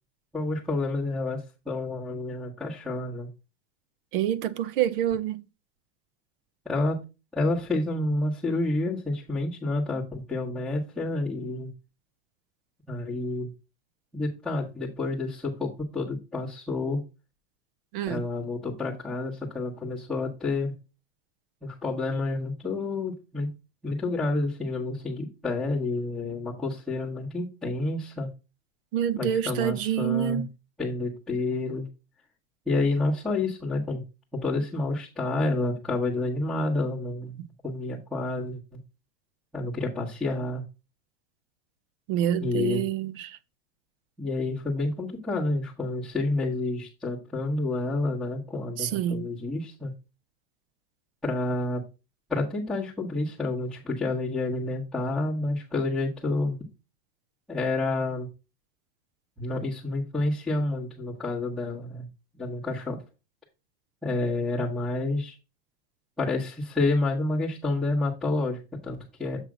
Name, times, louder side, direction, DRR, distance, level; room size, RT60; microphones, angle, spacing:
voice 1, 0.3-3.3 6.6-7.0 7.3-11.7 12.9-13.5 14.1-17.0 18.1-20.7 21.6-23.5 23.8-28.3 29.1-30.4 30.8-31.9 32.7-34.0 34.3-38.6 39.5-40.6 42.4-42.8 44.2-49.9 51.2-51.8 52.3-56.6 57.5-58.3 59.4-62.1 62.4-63.0 64.0-65.3 66.2-69.5, left 2 dB, ahead, 1.4 m, -29 dB
voice 2, 4.1-5.4 17.9-18.2 28.9-30.5 42.1-43.4 48.8-49.3, right 10 dB, 55° right, 0.8 m, -27 dB
7.5 x 3.2 x 6.1 m
supercardioid pair, 165°, 33 cm